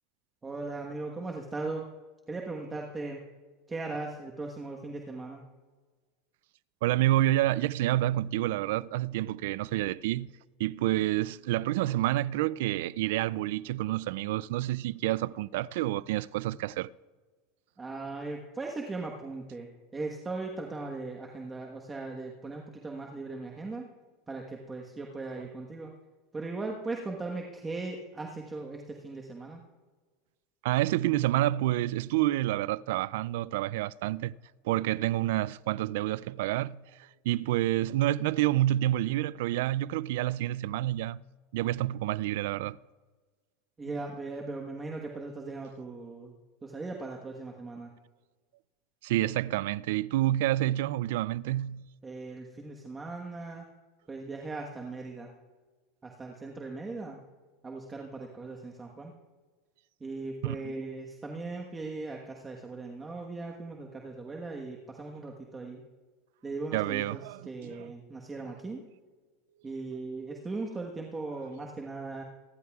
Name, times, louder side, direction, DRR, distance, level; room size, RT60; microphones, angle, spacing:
voice 1, 0.4-1.9 2.3-3.2 3.7-5.4 17.8-23.9 24.3-25.9 26.3-29.6 43.8-46.3 46.6-47.9 52.0-53.6 54.1-55.3 56.0-57.2 57.6-59.1 60.0-65.8 66.4-67.2 67.5-68.8 69.6-72.2, right 3 dB, 15° right, 1.3 m, -38 dB
voice 2, 6.8-10.3 10.6-16.9 30.6-34.4 34.6-41.2 41.5-42.8 43.9-44.0 49.0-51.8 60.4-60.7 66.7-67.9, right 15 dB, 75° right, 0.3 m, -28 dB
25.5 x 11.0 x 2.4 m
supercardioid pair, 130°, 0 cm